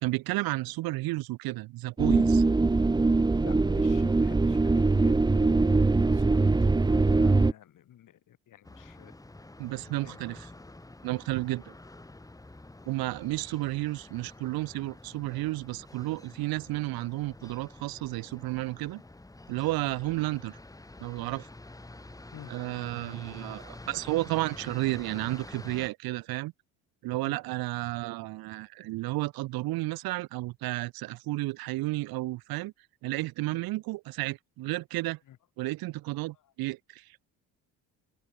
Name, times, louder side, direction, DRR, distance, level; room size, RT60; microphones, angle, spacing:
voice 1, 0.0-2.4 9.6-10.5 11.0-11.7 12.8-19.0 19.5-20.6 21.0-21.5 22.5-26.5 27.0-32.7 33.0-35.2 35.6-37.0, right 19 dB, 80° right, 1.7 m, -32 dB
sound 1, 2.0-7.5, right 3 dB, 10° right, 1.1 m, -22 dB
voice 2, 3.4-9.1 10.0-10.2 13.0-13.1 19.8-20.0 22.3-22.5 27.2-27.4 33.5-33.6 35.3-35.4 36.4-36.5, left 11 dB, 60° left, 7.1 m, -51 dB
sound 2, 8.6-25.9, left 2 dB, 10° left, 3.1 m, -48 dB
open air
cardioid pair, 115°, 36 cm